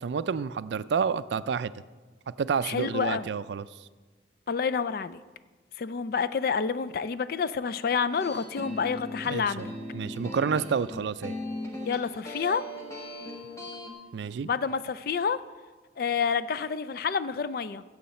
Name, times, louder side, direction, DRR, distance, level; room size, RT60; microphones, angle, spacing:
voice 1, 0.0-1.7 2.4-3.7 9.3-9.7 9.9-11.3 14.1-14.5, right 6 dB, 70° right, 16 dB, 0.3 m, -29 dB
voice 2, 2.6-3.3 4.5-5.2 5.8-9.6 11.9-12.6 14.4-15.4 16.0-17.8, left 6 dB, 50° left, 14 dB, 0.4 m, -28 dB
sound 1, 8.1-13.9, left 1 dB, 15° left, 1.3 m, -38 dB
14.5 x 7.7 x 4.2 m, 1.3 s
head